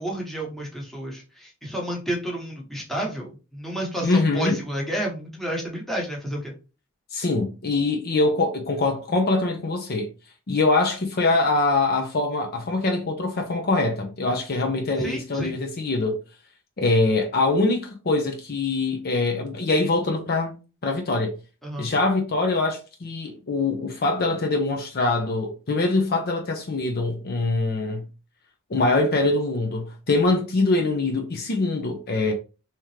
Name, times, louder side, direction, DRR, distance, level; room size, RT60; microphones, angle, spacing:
voice 1, 0.0-6.5 15.0-15.5 21.6-21.9, right 1 dB, ahead, 1.1 m, -30 dB
voice 2, 4.0-4.6 7.1-10.1 10.5-16.2 16.8-20.5 20.8-21.3 21.8-28.0 28.7-32.3, left 2 dB, 45° left, 0.6 m, -23 dB
3.5 x 2.9 x 3.2 m
head